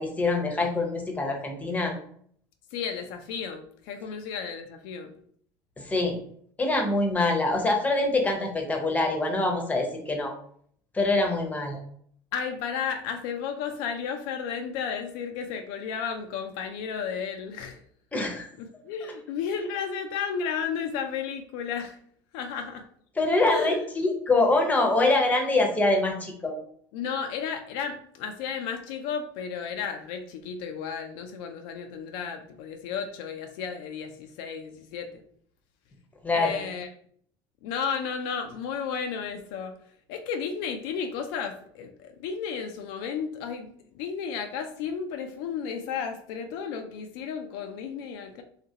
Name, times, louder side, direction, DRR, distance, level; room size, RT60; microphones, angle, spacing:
voice 1, 0.0-1.9 5.8-6.2 6.6-10.3 10.9-11.8 18.1-18.5 23.2-26.6 36.2-36.6, left 2 dB, 15° left, 2 dB, 0.7 m, -24 dB
voice 2, 2.7-5.1 12.3-17.8 18.6-22.0 22.3-22.9 23.5-23.8 26.9-35.2 36.3-36.9 37.6-39.7 40.1-48.4, left 6 dB, 80° left, 6 dB, 0.4 m, -33 dB
2.8 x 2.4 x 2.7 m, 0.62 s
supercardioid pair, 95°, 11 cm